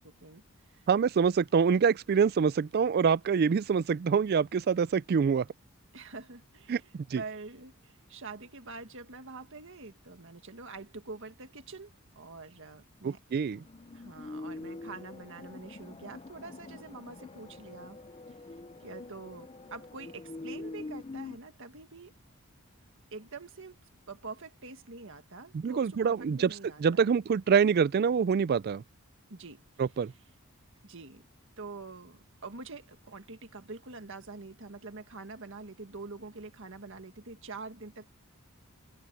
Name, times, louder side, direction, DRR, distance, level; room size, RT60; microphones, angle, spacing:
voice 1, 0.0-0.9 5.9-13.2 13.9-18.0 18.3-18.4 18.8-22.1 23.1-23.8 24.1-27.1 29.3-29.6 30.8-31.2 31.6-38.1, right 3 dB, 60° right, 1.8 m, -45 dB
voice 2, 0.9-5.4 6.7-7.2 13.0-13.6 25.5-26.5 26.8-28.8 29.8-30.1, right 6 dB, 45° right, 0.3 m, -25 dB
sound 1, 13.5-21.4, left 2 dB, 25° left, 0.5 m, -44 dB
head